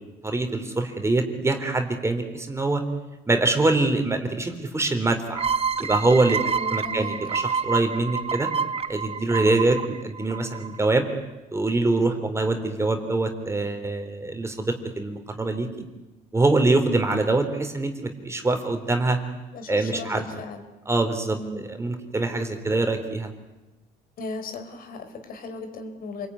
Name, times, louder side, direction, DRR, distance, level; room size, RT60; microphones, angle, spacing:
voice 1, 0.0-2.8 3.3-5.4 5.8-8.5 8.9-11.1 11.5-15.7 16.3-19.2 19.7-20.2 20.9-23.3, right 2 dB, 15° right, 5 dB, 3.7 m, -24 dB
sound 1, 5.4-10.8, right 6 dB, 35° right, 1.1 m, -28 dB
voice 2, 6.6-7.2 19.5-20.6 21.4-21.7 24.2-26.3, left 3 dB, 60° left, 6 dB, 4.6 m, -36 dB
28.5 x 21.5 x 9.8 m, 1.0 s
cardioid pair, 110°, 17 cm